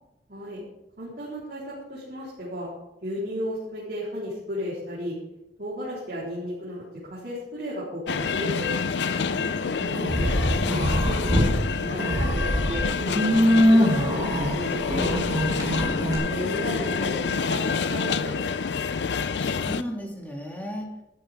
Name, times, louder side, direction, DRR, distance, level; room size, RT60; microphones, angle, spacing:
voice 1, 0.3-0.6 1.0-2.7 3.0-5.2 5.6-8.7 9.6-11.5 11.8-13.5 13.7-15.1 16.2-18.3, equal, 60° right, -8 dB, 4.1 m, -34 dB
sound 1, 8.1-19.8, left 5 dB, 75° left, 0.5 m, -28 dB
voice 2, 9.0-9.6 15.5-16.2 19.2-20.9, equal, 10° left, -1 dB, 2.3 m, -36 dB
sound 2, 9.9-11.5 11.9-16.2, equal, 25° right, 4.2 m, -23 dB
13.5 x 12.0 x 3.7 m, 0.95 s
head